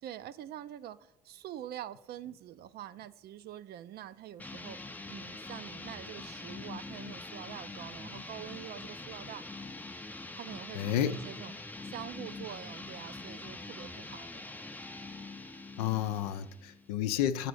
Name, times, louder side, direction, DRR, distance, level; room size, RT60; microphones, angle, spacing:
voice 1, 0.0-4.8 5.1-9.4 10.3-14.5, right 11 dB, 55° right, 0.4 m, -45 dB
sound 1, 4.4-16.9, left 2 dB, 10° left, 0.5 m, -44 dB
voice 2, 10.7-11.2 15.8-17.5, left 11 dB, 85° left, 0.5 m, -31 dB
7.6 x 4.0 x 6.3 m
hypercardioid pair, 65°, 19 cm